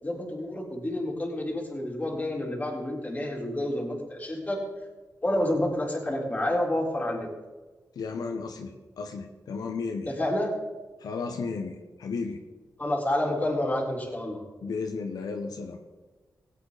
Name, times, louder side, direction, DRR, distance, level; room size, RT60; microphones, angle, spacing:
voice 1, 0.0-4.6 5.2-7.3 10.1-10.5 12.8-14.4, left 1 dB, 25° left, -2 dB, 3.8 m, -29 dB
voice 2, 7.9-10.1 11.0-12.4 14.6-15.8, left 4 dB, 80° left, 4 dB, 1.1 m, -34 dB
17.0 x 9.0 x 4.1 m, 1.2 s
cardioid pair, 70°, 6 cm